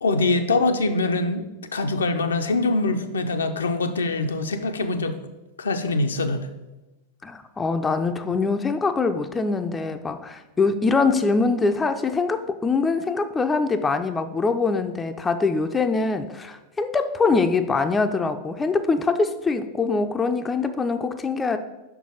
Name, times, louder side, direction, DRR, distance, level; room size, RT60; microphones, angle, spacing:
voice 1, 0.0-5.2 5.6-6.5, left 2 dB, 70° left, 7 dB, 0.5 m, -24 dB
voice 2, 7.2-21.6, left 4 dB, 15° left, 8 dB, 0.4 m, -23 dB
5.6 x 4.7 x 5.4 m, 1.0 s
figure-of-eight pair, 90°, 0 cm